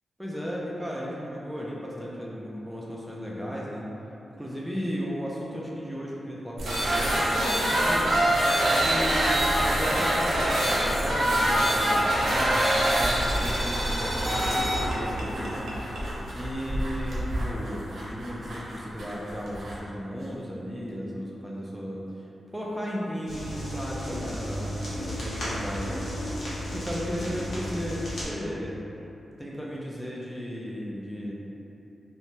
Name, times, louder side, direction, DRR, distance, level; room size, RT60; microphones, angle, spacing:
voice 1, 0.2-3.9 4.4-15.7 16.3-25.9 26.7-28.7 29.4-31.3, equal, ahead, -5 dB, 0.3 m, -35 dB
sound 1, 6.6-19.8, right 1 dB, 90° right, 0.6 m, -25 dB
sound 2, 23.3-28.3, equal, 65° left, 0.8 m, -33 dB
2.6 x 2.1 x 3.0 m, 3.0 s
cardioid pair, 80°, 0 cm